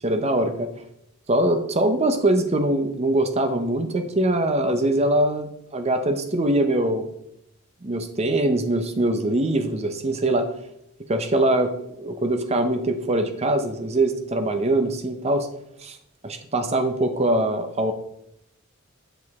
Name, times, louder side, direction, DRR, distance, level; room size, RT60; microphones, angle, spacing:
voice 1, 0.0-0.7 1.3-7.1 7.8-10.5 11.1-15.5 15.8-16.0 16.2-17.9, right 1 dB, 30° right, 8 dB, 0.7 m, -22 dB
7.9 x 5.0 x 3.5 m, 0.77 s
head